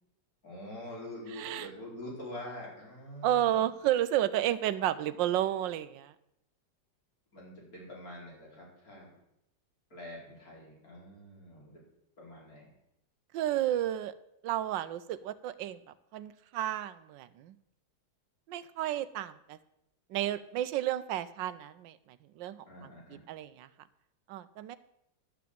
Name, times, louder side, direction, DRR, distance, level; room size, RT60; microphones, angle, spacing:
voice 1, 0.4-3.6 7.3-9.1 9.9-11.8 12.2-12.7 22.7-23.2, left 1 dB, 50° left, -4 dB, 4.9 m, -45 dB
voice 2, 1.3-1.7 3.2-6.1 13.3-14.1 14.4-17.6 18.5-19.6 20.1-22.7 23.1-23.7 24.3-24.8, right 12 dB, 85° right, 14 dB, 1.4 m, -32 dB
11.5 x 6.1 x 8.5 m, 0.81 s
omnidirectional pair, 2.0 m